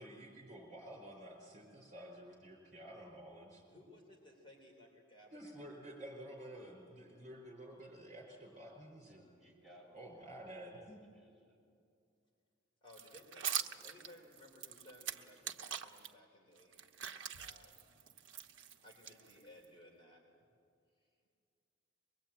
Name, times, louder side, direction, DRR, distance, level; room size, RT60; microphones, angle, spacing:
voice 1, 0.0-3.6 5.3-9.2 9.9-11.0, right 1 dB, 40° right, 1 dB, 5.0 m, -51 dB
voice 2, 3.7-5.5 12.8-17.8 18.8-20.4 20.9-21.2, left 1 dB, 25° left, -1 dB, 3.6 m, -60 dB
voice 3, 9.1-11.7 13.7-13.9, equal, ahead, -5 dB, 7.9 m, -63 dB
sound 1, 12.9-16.1 16.6-19.6, right 8 dB, 80° right, 1.1 m, -43 dB
23.5 x 21.5 x 8.9 m, 2.3 s
head